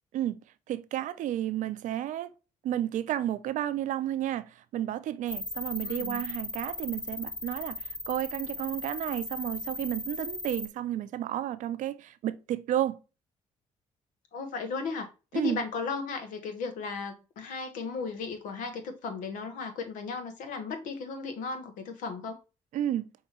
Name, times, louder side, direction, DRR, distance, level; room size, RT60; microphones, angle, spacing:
voice 1, 0.7-2.3 2.6-13.0 15.3-15.6 22.7-23.1, right 12 dB, 70° right, 0.5 m, -32 dB
sound 1, 5.3-10.7, left 2 dB, 20° left, 0.5 m, -37 dB
voice 2, 5.8-6.2 14.3-22.4, left 4 dB, 80° left, 1.0 m, -35 dB
5.5 x 2.9 x 2.9 m
supercardioid pair, 60°, 13 cm